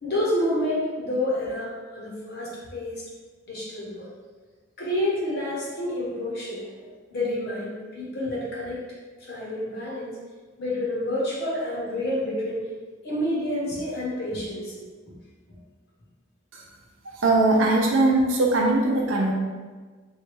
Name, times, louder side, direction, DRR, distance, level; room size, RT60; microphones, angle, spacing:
voice 1, 0.0-3.1 3.5-4.1 4.8-8.8 9.2-10.2 10.6-12.6 13.0-14.8, left 1 dB, 55° left, -5 dB, 0.8 m, -29 dB
voice 2, 17.2-19.3, right 2 dB, 80° right, -1 dB, 0.6 m, -20 dB
3.1 x 2.2 x 3.1 m, 1.4 s
head